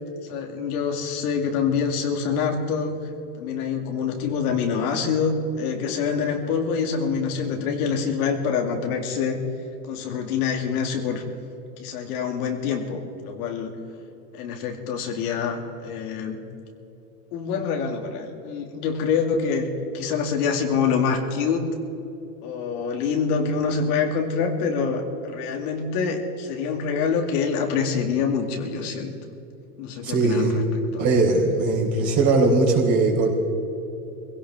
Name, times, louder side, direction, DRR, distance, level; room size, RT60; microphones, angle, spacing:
voice 1, 0.3-3.0 3.4-9.4 9.9-11.2 11.8-13.7 14.4-16.4 17.3-19.7 19.9-21.6 22.4-29.1 29.8-31.0, left 6 dB, 65° left, 2 dB, 2.5 m, -26 dB
voice 2, 30.0-30.6 31.0-33.3, right 3 dB, 35° right, -1 dB, 4.3 m, -20 dB
23.0 x 17.0 x 3.7 m, 2.9 s
hypercardioid pair, 115°, 48 cm